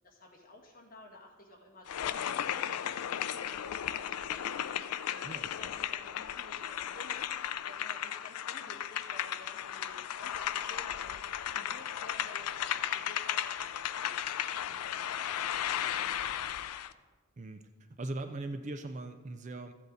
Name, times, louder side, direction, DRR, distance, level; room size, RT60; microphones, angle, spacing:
voice 1, 0.0-11.3 11.5-14.2 14.6-16.8, left 1 dB, 40° left, -1 dB, 1.8 m, -55 dB
sound 1, 1.9-16.9, left 10 dB, 85° left, 0.4 m, -35 dB
voice 2, 5.2-5.7 17.4-19.7, right 2 dB, 30° right, 8 dB, 0.4 m, -40 dB
14.0 x 8.1 x 4.0 m, 1.3 s
head